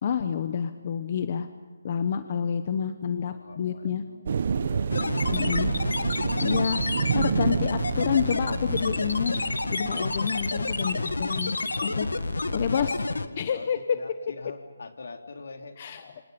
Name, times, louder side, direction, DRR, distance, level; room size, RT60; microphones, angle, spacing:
voice 1, 0.0-1.5 1.8-4.0 5.3-5.7 6.4-6.8 7.1-9.4 9.7-11.5 11.8-12.1 12.5-12.9 13.4-14.0 15.8-16.1, left 7 dB, 40° left, 10 dB, 1.0 m, -28 dB
voice 2, 3.2-5.9 6.4-7.1 11.7-15.8, left 3 dB, 65° left, 5 dB, 3.0 m, -44 dB
sound 1, 4.3-13.1, right 6 dB, 50° right, 0.8 m, -30 dB
sound 2, 4.9-13.3, left 3 dB, 90° left, 1.7 m, -29 dB
28.5 x 26.5 x 5.4 m, 1.4 s
hypercardioid pair, 165°, 0 cm